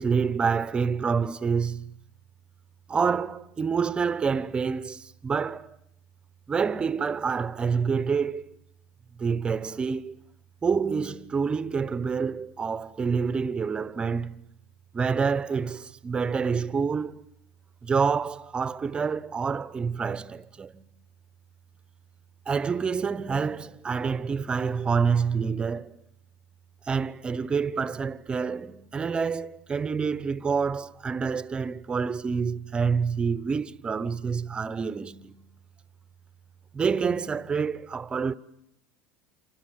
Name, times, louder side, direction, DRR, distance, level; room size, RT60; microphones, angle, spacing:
voice 1, 0.0-1.9 2.9-5.8 6.5-8.5 9.2-10.1 10.6-14.4 14.9-17.2 17.8-20.8 22.5-26.0 26.9-35.4 36.7-38.3, right 5 dB, 25° right, 1.0 m, -27 dB
28.5 x 26.5 x 7.9 m
supercardioid pair, 105°, 4 cm